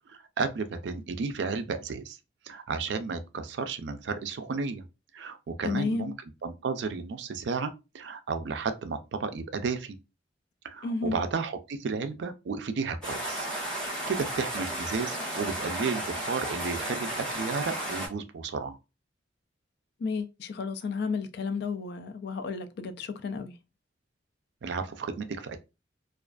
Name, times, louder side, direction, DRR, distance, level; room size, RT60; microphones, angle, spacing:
voice 1, 0.1-2.2 2.5-4.8 5.1-6.1 6.4-10.0 10.6-13.5 13.8-18.8 24.6-25.6, right 4 dB, 65° right, 0.4 m, -33 dB
voice 2, 5.6-6.1 10.8-11.2 20.0-23.5, left 4 dB, 60° left, 0.3 m, -32 dB
sound 1, 13.0-18.1, right 1 dB, 5° left, 1.1 m, -33 dB
2.4 x 2.4 x 2.2 m
head